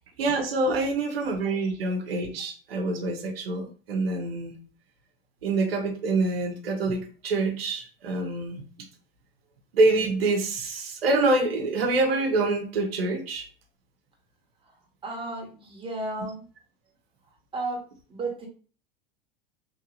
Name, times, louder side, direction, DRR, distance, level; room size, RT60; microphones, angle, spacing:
voice 1, 0.2-4.5 5.4-8.6 9.7-13.4, right 2 dB, 90° right, 3 dB, 0.7 m, -26 dB
voice 2, 15.0-16.4 17.5-17.8 18.1-18.5, right 2 dB, 20° right, -1 dB, 1.2 m, -33 dB
3.0 x 2.7 x 2.6 m, 0.38 s
hypercardioid pair, 100°, 29 cm